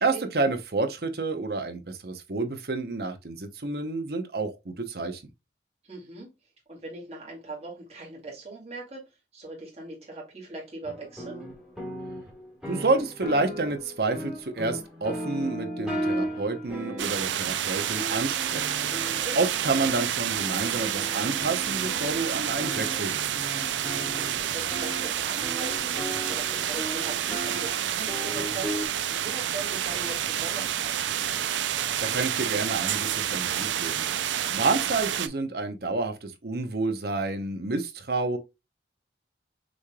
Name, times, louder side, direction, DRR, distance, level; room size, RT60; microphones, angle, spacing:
voice 1, 0.0-5.2 12.7-18.7 19.3-23.4 32.0-34.1 34.5-38.4, right 3 dB, 55° right, 0.8 m, -29 dB
voice 2, 5.8-6.3 6.7-9.0 9.3-11.4 19.2-19.4 24.1-31.3, right 3 dB, 35° right, 2.3 m, -40 dB
sound 1, 10.8-28.9, equal, 5° right, 1.5 m, -37 dB
sound 2, 17.0-35.3, right 10 dB, 85° right, 0.4 m, -29 dB
6.1 x 3.3 x 2.3 m
head